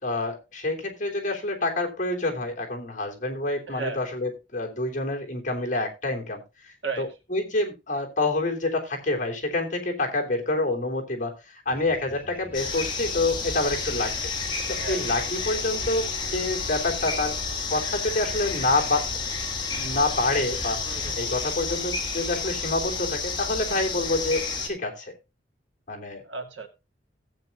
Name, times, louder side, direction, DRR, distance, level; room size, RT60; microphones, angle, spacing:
voice 1, 0.0-14.3 14.7-17.4 17.7-19.3 19.7-20.8 21.2-25.1 25.9-26.2, left 2 dB, 45° left, 3.2 m, -27 dB
voice 2, 3.7-4.0 6.8-7.1 14.7-15.1 20.9-21.3 26.2-26.7, right 4 dB, 85° right, 2.2 m, -34 dB
sound 1, 11.7-21.1, left 2 dB, 10° right, 3.1 m, -44 dB
sound 2, 12.5-24.7, left 4 dB, 25° left, 2.7 m, -30 dB
16.5 x 8.5 x 2.5 m
head